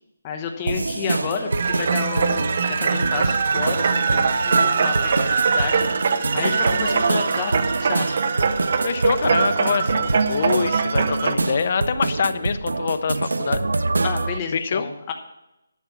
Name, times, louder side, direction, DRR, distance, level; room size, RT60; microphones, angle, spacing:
voice 1, 0.2-5.1 5.4-5.8 6.3-7.5 7.8-8.2 14.0-15.1, left 6 dB, 15° left, 3 dB, 1.0 m, -30 dB
sound 1, 0.7-14.4, right 3 dB, 85° right, 0.6 m, -26 dB
sound 2, 1.5-11.4, right 5 dB, 40° right, 0.6 m, -22 dB
voice 2, 8.8-13.7 14.5-14.9, left 6 dB, 35° left, 11 dB, 0.6 m, -25 dB
12.0 x 6.1 x 7.1 m, 0.92 s
hypercardioid pair, 175°, 0 cm